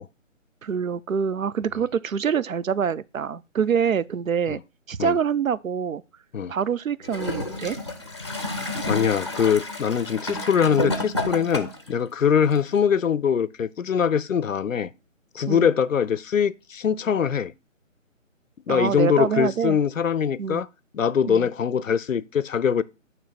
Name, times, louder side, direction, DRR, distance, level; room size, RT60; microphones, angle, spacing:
voice 1, 0.6-4.6 4.9-6.0 6.5-7.8 15.5-15.7 18.7-19.8 20.4-20.6 21.3-21.5, right 7 dB, 85° right, 0.5 m, -25 dB
Gurgling / Toilet flush, 7.0-11.9 12.7-12.8, left 1 dB, 20° left, 0.5 m, -30 dB
voice 2, 8.9-14.9 15.3-17.5 18.7-20.7 20.9-22.8, left 7 dB, 75° left, 0.6 m, -22 dB
9.1 x 3.1 x 5.8 m
figure-of-eight pair, 145°, 39 cm